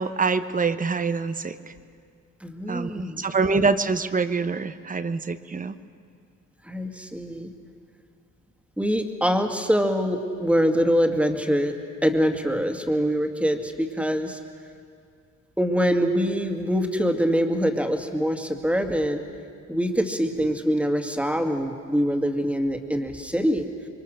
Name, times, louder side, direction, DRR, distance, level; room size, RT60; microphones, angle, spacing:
voice 1, 0.0-1.7 2.7-5.7, right 4 dB, 25° right, 12 dB, 1.0 m, -25 dB
voice 2, 2.4-3.2 6.7-7.5 8.8-11.7 12.0-14.4 15.6-19.2 19.7-23.7, equal, 5° right, 4 dB, 2.3 m, -24 dB
27.0 x 23.0 x 6.7 m, 2.4 s
cardioid pair, 90°, 30 cm